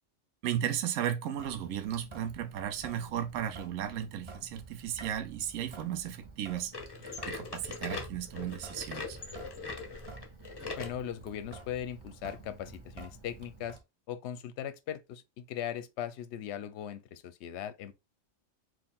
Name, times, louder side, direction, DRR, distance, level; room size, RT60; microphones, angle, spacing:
voice 1, 0.4-6.7 7.3-9.2, right 10 dB, 75° right, 1.0 m, -35 dB
Sink (filling or washing) / Drip, 1.4-13.8, right 3 dB, 30° right, 0.5 m, -50 dB
sound 1, 6.7-11.0 11.5-11.6 12.3-12.4 13.3-13.4, left 4 dB, 25° left, 0.6 m, -41 dB
voice 2, 10.8-13.8 14.1-17.9, left 10 dB, 65° left, 0.8 m, -39 dB
4.5 x 2.5 x 3.5 m
omnidirectional pair, 1.4 m